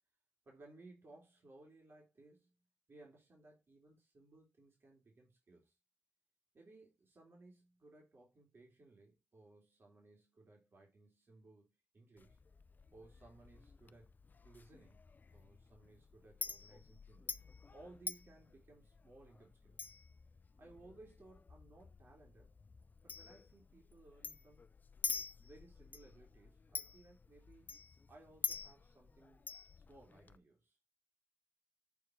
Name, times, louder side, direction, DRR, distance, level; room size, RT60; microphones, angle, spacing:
voice 1, 0.5-2.5 2.9-5.7 6.5-12.4 12.9-14.1 14.4-17.4 17.7-19.8 20.6-22.5 23.0-24.6 25.4-27.7 28.1-29.4 29.9-30.8, right 2 dB, 65° right, 3.5 m, -61 dB
Chink clink, 12.2-30.4, left 5 dB, 45° left, 0.5 m, -48 dB
8.2 x 4.6 x 4.6 m
wide cardioid pair, 80°, 4 cm